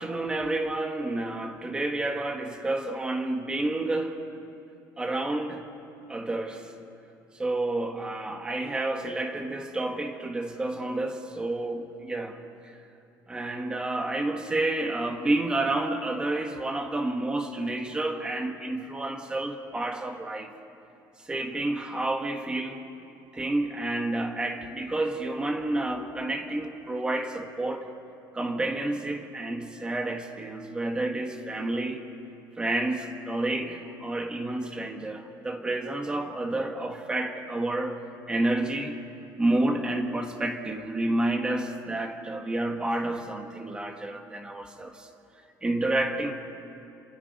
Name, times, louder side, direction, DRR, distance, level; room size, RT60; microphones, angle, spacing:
voice 1, 0.0-4.3 5.0-5.6 6.1-6.7 7.4-12.4 13.3-20.5 21.3-22.8 23.3-27.9 28.3-32.0 32.6-39.0 39.4-45.1 45.6-46.3, right 2 dB, 10° right, 5 dB, 1.5 m, -30 dB
29.5 x 26.5 x 5.4 m, 2.7 s
cardioid pair, 170°, 8 cm